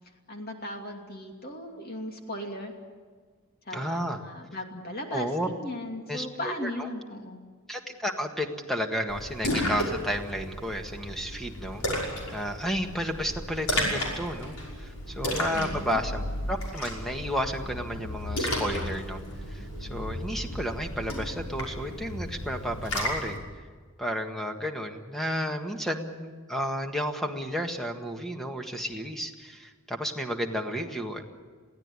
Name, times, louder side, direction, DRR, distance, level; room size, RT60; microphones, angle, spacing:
voice 1, 0.3-2.7 3.7-7.4 15.5-16.0, left 1 dB, 45° left, 2 dB, 2.7 m, -37 dB
voice 2, 3.7-4.2 5.1-5.5 6.1-6.9 7.7-19.2 19.5-23.4 24.0-31.2, equal, ahead, 4 dB, 1.7 m, -32 dB
Splash splatter, 9.1-23.4, left 1 dB, 85° left, 5.8 m, -33 dB
23.0 x 16.0 x 9.8 m, 1.5 s
head